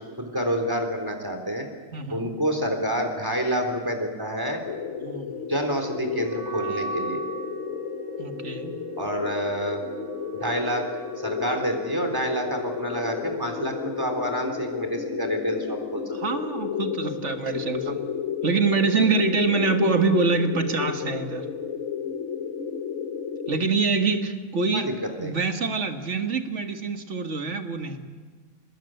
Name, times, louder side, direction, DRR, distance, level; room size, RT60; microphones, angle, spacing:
voice 1, 0.0-1.7 2.1-4.6 5.5-7.2 9.0-9.8 10.3-16.4 24.7-24.9 25.2-25.4, equal, 15° right, 4 dB, 3.7 m, -28 dB
voice 2, 1.9-2.3 5.0-5.3 8.2-8.8 16.1-18.0 18.4-21.5 23.5-24.9 25.2-28.0, right 4 dB, 70° right, 6 dB, 2.1 m, -25 dB
sound 1, 4.6-23.6, left 7 dB, 80° left, 1.5 m, -32 dB
Wind instrument woodwind instrument, 6.1-13.2, right 3 dB, 55° left, 4.4 m, -38 dB
24.0 x 20.5 x 9.2 m, 1.5 s
omnidirectional pair, 1.3 m